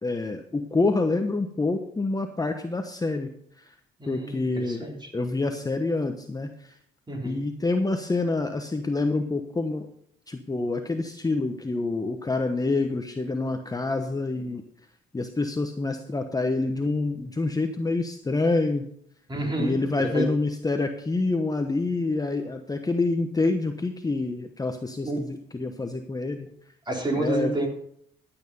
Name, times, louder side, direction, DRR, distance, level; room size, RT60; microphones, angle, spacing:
voice 1, 0.0-3.3 3.6-3.7 4.1-4.8 5.1-6.8 7.2-9.9 10.3-14.6 15.1-18.8 19.6-26.5 27.1-27.5, left 3 dB, 20° left, 6 dB, 1.0 m, -27 dB
voice 2, 4.0-5.0 7.1-7.4 19.3-20.3 25.0-25.2 26.9-27.7, right 1 dB, 20° right, 1 dB, 3.7 m, -29 dB
12.0 x 8.8 x 5.4 m, 0.69 s
cardioid pair, 90°, 20 cm